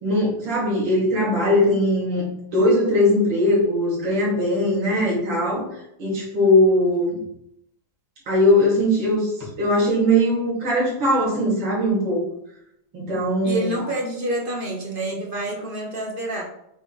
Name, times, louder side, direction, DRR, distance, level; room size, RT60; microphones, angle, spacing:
voice 1, 0.0-5.6 6.0-7.2 8.3-9.3 9.6-12.2 12.9-13.7, left 1 dB, 65° right, -6 dB, 3.5 m, -20 dB
voice 2, 13.4-16.4, right 1 dB, 30° right, 0 dB, 1.2 m, -27 dB
7.9 x 3.4 x 4.7 m, 0.77 s
omnidirectional pair, 2.3 m